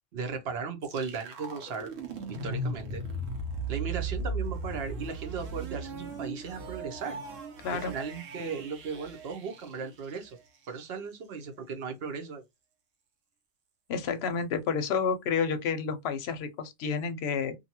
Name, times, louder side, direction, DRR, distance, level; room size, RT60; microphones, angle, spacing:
voice 1, 0.1-1.9 2.4-3.0 3.7-7.2 7.7-10.4 10.7-12.4, right 5 dB, 60° right, 0.9 m, -36 dB
sound 1, 0.8-10.7, right 2 dB, 90° right, 1.1 m, -37 dB
voice 2, 7.6-7.9 13.9-17.6, left 6 dB, 65° left, 0.7 m, -30 dB
2.6 x 2.3 x 2.8 m
omnidirectional pair, 1.3 m